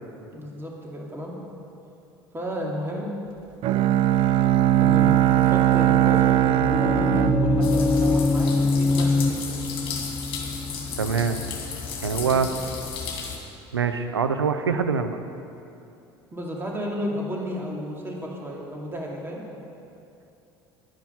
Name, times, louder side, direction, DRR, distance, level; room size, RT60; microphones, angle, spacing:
voice 1, 0.3-1.4 2.3-3.1 4.8-9.4 12.1-12.4 16.3-19.4, equal, 20° right, -2 dB, 2.4 m, -33 dB
Bowed string instrument, 3.6-8.6, right 12 dB, 45° right, 0.4 m, -20 dB
sound 1, 6.3-12.0, left 3 dB, 15° left, 0.7 m, -25 dB
sound 2, 7.6-13.4, left 5 dB, 40° left, 2.4 m, -34 dB
voice 2, 11.0-11.4 12.0-12.5 13.7-15.2, right 6 dB, 85° right, 9 dB, 0.6 m, -24 dB
11.0 x 9.6 x 5.7 m, 2.8 s
figure-of-eight pair, 65°, 13 cm